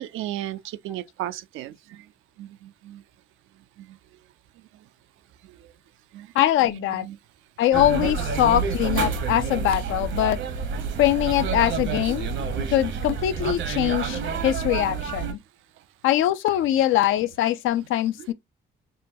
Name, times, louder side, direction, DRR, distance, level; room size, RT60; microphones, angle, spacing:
voice 1, 0.0-1.7 2.4-3.0 6.1-6.3 6.6-7.2 9.1-9.2 12.1-12.2 12.9-13.0 18.2-18.3, right 13 dB, 90° right, 0.5 m, -35 dB
voice 2, 6.3-7.1 7.6-10.4 11.0-12.3 12.7-15.4 16.0-18.3, left 13 dB, 80° left, 0.5 m, -22 dB
sound 1, 7.7-15.3, right 6 dB, 70° right, 1.0 m, -28 dB
5.5 x 2.2 x 2.6 m
cardioid pair, 90°, 20 cm